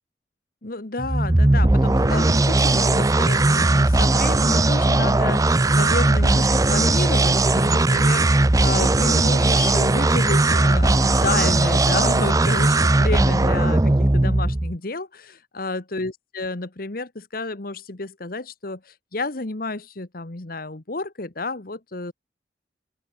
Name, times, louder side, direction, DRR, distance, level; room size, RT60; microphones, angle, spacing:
voice 1, 0.6-22.1, left 2 dB, 55° left, 1.4 m, -30 dB
sound 1, 1.0-14.8, right 2 dB, 20° right, 0.6 m, -18 dB
open air
head